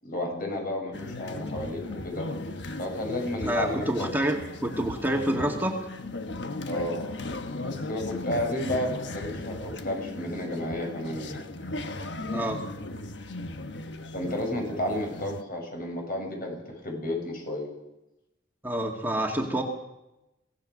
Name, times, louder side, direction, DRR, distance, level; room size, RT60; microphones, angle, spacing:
voice 1, 0.0-2.3 2.8-4.1 6.7-7.1 7.6-11.4 14.1-17.7, left 1 dB, 55° left, 2 dB, 7.3 m, -32 dB
sound 1, 0.9-15.4, left 2 dB, 70° left, 1.3 m, -37 dB
voice 2, 3.4-5.8 12.3-12.6 18.6-19.6, right 1 dB, 10° right, 1 dB, 2.1 m, -28 dB
23.5 x 17.5 x 6.6 m, 0.92 s
head